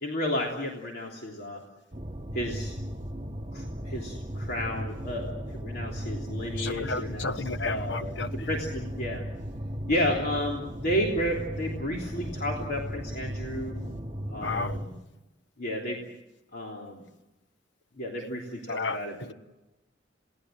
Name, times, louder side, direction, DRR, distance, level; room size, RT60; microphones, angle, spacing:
voice 1, 0.0-1.6 2.3-2.7 3.5-9.2 9.9-13.8 14.3-15.0 15.6-16.0 16.5-17.0 18.0-19.3, equal, 60° left, 3.3 m, -32 dB
sound 1, 1.9-14.9, equal, 30° right, 2.5 m, -36 dB
voice 2, 6.6-8.5 14.4-14.8 18.7-19.0, left 3 dB, 75° left, 1.3 m, -32 dB
29.0 x 18.5 x 7.7 m
head